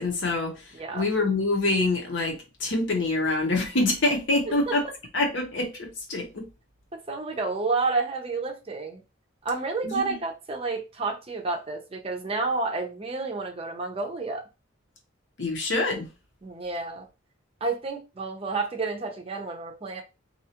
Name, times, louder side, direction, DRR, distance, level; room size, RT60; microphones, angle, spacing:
voice 1, 0.0-4.8 5.1-6.5 9.8-10.2 15.4-16.1, left 2 dB, 65° left, 0.9 m, -26 dB
voice 2, 7.1-9.0 9.4-14.5 16.4-17.1 17.6-20.0, right 3 dB, 30° right, 0.5 m, -30 dB
2.7 x 2.3 x 2.8 m
head